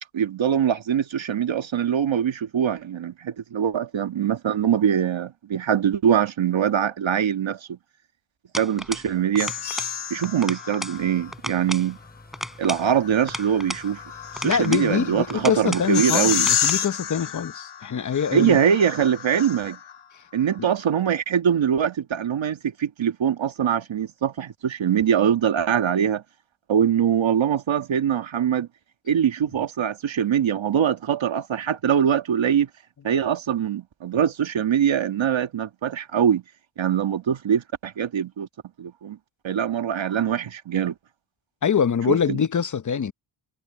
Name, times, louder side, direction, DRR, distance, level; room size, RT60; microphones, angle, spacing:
voice 1, 0.1-7.8 8.6-9.5 10.1-12.0 12.6-14.0 14.3-16.5 18.3-19.8 20.3-26.2 26.7-28.7 29.1-32.7 33.0-36.4 36.8-38.5 38.8-39.2 39.4-40.9 42.1-42.4, right 8 dB, 65° right, 1.5 m, -23 dB
sound 1, 8.5-9.1 9.4-10.0 10.2-11.0 11.3-11.9 12.3-13.9 14.4-14.9 15.3-15.9 16.3-16.8, equal, ahead, 3.9 m, -34 dB
sound 2, 9.4-11.3 12.8-20.0, left 8 dB, 85° left, 2.6 m, -30 dB
sound 3, 11.0-16.5, left 2 dB, 20° left, 7.3 m, -49 dB
voice 2, 14.4-18.6 20.1-20.2 20.6-20.7 41.6-43.1, left 7 dB, 40° left, 0.8 m, -24 dB
cardioid pair, 85°, 49 cm